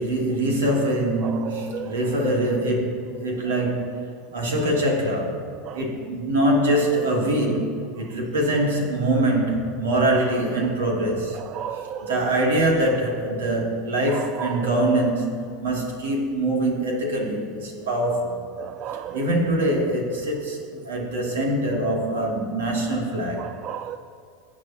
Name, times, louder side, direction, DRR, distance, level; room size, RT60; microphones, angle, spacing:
voice 1, 0.0-5.4 5.7-11.4 11.7-18.4 19.1-23.5, right 1 dB, 75° right, 2.6 m, -24 dB
voice 2, 1.2-1.9 5.6-5.8 11.5-12.2 14.1-14.7 18.6-19.3 23.4-24.0, right 10 dB, 45° right, 0.4 m, -33 dB
23.5 x 8.6 x 2.9 m
hypercardioid pair, 85°, 0 cm